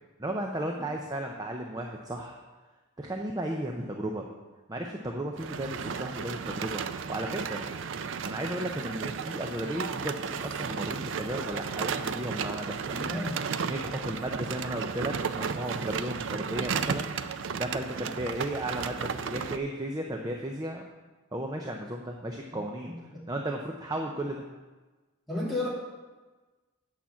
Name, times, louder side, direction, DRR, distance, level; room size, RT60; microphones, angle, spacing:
voice 1, 0.2-2.4 3.0-4.2 4.7-7.7 8.2-13.2 13.6-17.1 17.6-19.0 19.2-20.8 21.3-22.9 23.3-24.4, right 1 dB, 15° right, 1 dB, 0.6 m, -34 dB
sound 1, 5.4-19.6, right 6 dB, 60° right, 0.4 m, -34 dB
voice 2, 12.8-13.4 22.5-23.2 25.3-25.7, left 2 dB, ahead, -8 dB, 2.6 m, -34 dB
8.7 x 5.8 x 7.0 m, 1.3 s
head